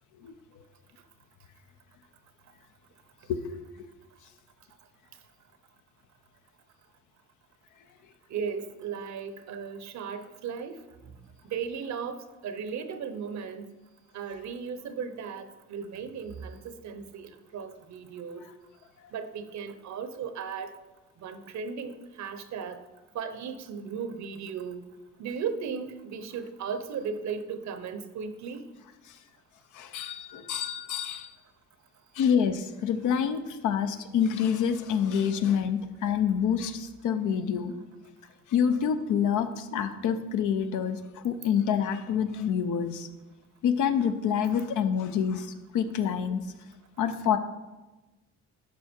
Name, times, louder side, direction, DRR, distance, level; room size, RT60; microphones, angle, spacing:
voice 1, 3.3-3.9 29.7-31.3 32.1-37.7 38.5-43.1 43.6-46.4 47.0-47.4, left 7 dB, 80° left, 9 dB, 0.8 m, -27 dB
voice 2, 8.3-11.1 11.4-13.7 14.1-18.5 19.1-20.7 21.2-22.8 23.1-24.9 25.2-28.7, right 6 dB, 65° right, 10 dB, 0.9 m, -36 dB
11.5 x 4.8 x 4.4 m, 1.1 s
cardioid pair, 90°, 30 cm